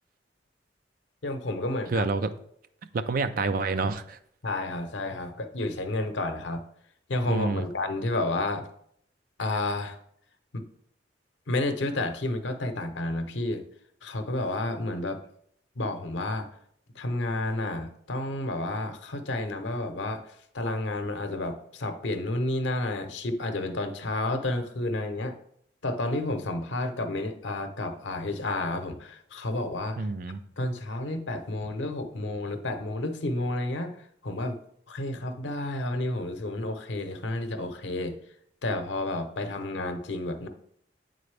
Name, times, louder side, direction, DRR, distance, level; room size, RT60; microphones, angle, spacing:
voice 1, 1.2-2.1 4.4-6.6 7.1-8.7 9.4-10.0 10.5-10.6 11.5-13.6 14.0-15.2 15.8-16.5 17.0-25.4 25.8-30.1 30.6-34.6 34.9-38.2 38.6-40.5, left 2 dB, 85° left, 7 dB, 0.7 m, -31 dB
voice 2, 1.9-2.3 2.9-4.2 7.3-7.7 30.0-30.4, right 3 dB, 50° right, 10 dB, 0.4 m, -28 dB
8.7 x 4.0 x 3.3 m, 0.68 s
head